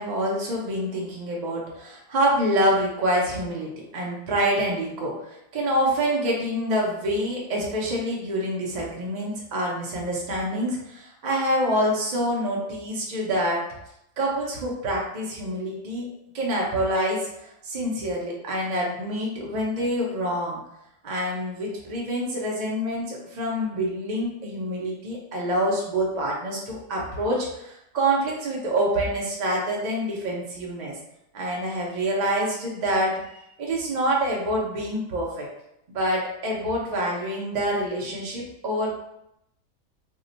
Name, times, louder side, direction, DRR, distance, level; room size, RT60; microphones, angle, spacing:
voice 1, 0.0-13.6 14.2-20.6 21.0-30.9 31.3-33.1 33.6-35.5 35.9-39.0, equal, 50° right, -3 dB, 0.5 m, -26 dB
2.8 x 2.1 x 3.8 m, 0.80 s
omnidirectional pair, 1.5 m